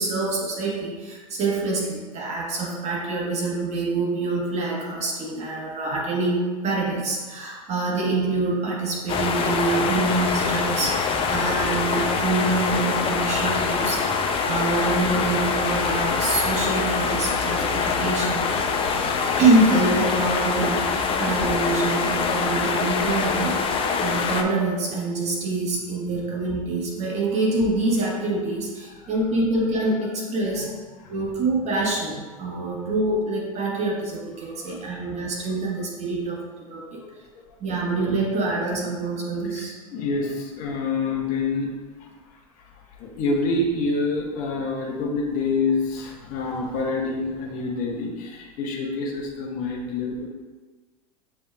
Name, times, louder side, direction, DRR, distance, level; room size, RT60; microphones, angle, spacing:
voice 1, 0.0-14.1 14.4-18.5 19.4-30.7 31.1-37.0 37.6-39.7, right 2 dB, 35° right, -3 dB, 1.4 m, -25 dB
sound 1, 9.1-24.4, left 5 dB, 30° left, 0.5 m, -24 dB
voice 2, 30.4-30.7 31.0-31.1 34.4-35.2 36.1-36.2 37.0-37.2 37.5-37.6 39.4-41.7 42.0-50.3, left 3 dB, 45° left, -1 dB, 1.1 m, -28 dB
6.6 x 3.5 x 2.3 m, 1.4 s
hypercardioid pair, 90°, 19 cm